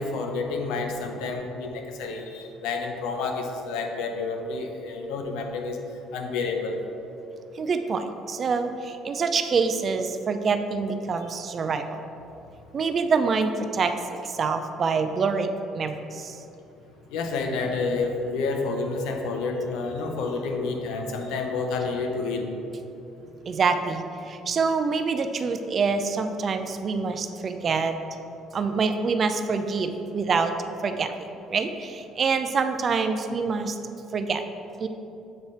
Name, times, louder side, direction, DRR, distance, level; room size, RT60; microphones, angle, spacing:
voice 1, 0.0-5.8 6.1-6.8 17.1-22.5, left 3 dB, 85° left, 4 dB, 0.6 m, -29 dB
voice 2, 7.6-8.0 8.3-8.7 9.1-12.0 12.7-13.9 14.4-16.0 23.5-24.0 24.5-27.9 28.5-30.5 30.8-31.1 31.5-31.9 32.2-33.7 34.1-34.4 34.8-34.9, right 5 dB, 40° right, 8 dB, 0.4 m, -25 dB
7.9 x 3.2 x 4.1 m, 2.8 s
cardioid pair, 105°, 0 cm